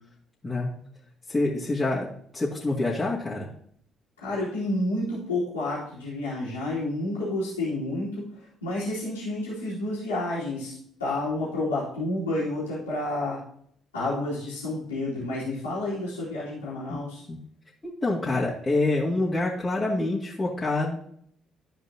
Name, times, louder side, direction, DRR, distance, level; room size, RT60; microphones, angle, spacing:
voice 1, 1.3-3.5 16.9-17.0 17.3-17.4 17.8-21.0, left 2 dB, 20° left, -6 dB, 2.2 m, -26 dB
voice 2, 4.2-10.7 11.0-13.4 13.9-17.2, left 2 dB, 85° left, -12 dB, 2.9 m, -30 dB
14.0 x 5.0 x 2.9 m, 0.65 s
figure-of-eight pair, 45°, 0 cm